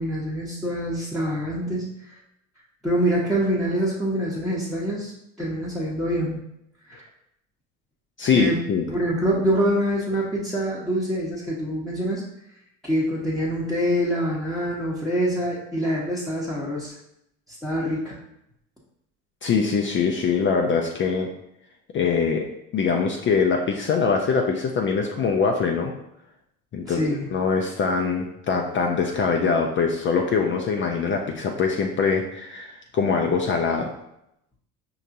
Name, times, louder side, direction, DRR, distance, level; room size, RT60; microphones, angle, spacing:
voice 1, 0.0-1.8 2.8-5.1 5.4-6.4 6.9-7.0 8.3-8.6 8.9-12.2 12.8-16.9 17.6-18.2 26.9-27.3, equal, ahead, -8 dB, 0.9 m, -25 dB
voice 2, 8.2-8.9 19.4-21.3 21.9-25.9 26.7-27.0 27.3-33.9, left 5 dB, 30° left, 1 dB, 0.4 m, -23 dB
5.2 x 2.9 x 2.5 m, 0.80 s
hypercardioid pair, 70°, 43 cm